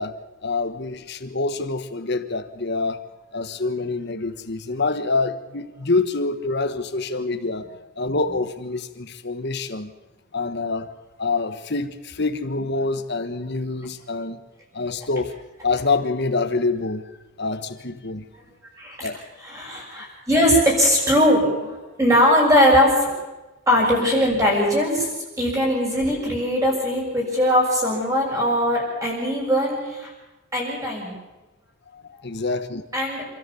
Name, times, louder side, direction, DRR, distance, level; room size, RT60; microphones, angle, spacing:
voice 1, 0.0-3.0 3.3-7.7 8.0-9.9 10.3-14.4 14.7-15.4 15.6-17.1 17.4-18.2 19.0-19.2 31.9-32.8, left 3 dB, 50° left, 1.3 m, -26 dB
voice 2, 18.8-19.1 19.4-23.1 23.7-25.1 25.4-30.1 30.5-31.1 32.9-33.4, equal, 15° right, 6.8 m, -20 dB
27.5 x 13.5 x 7.1 m
head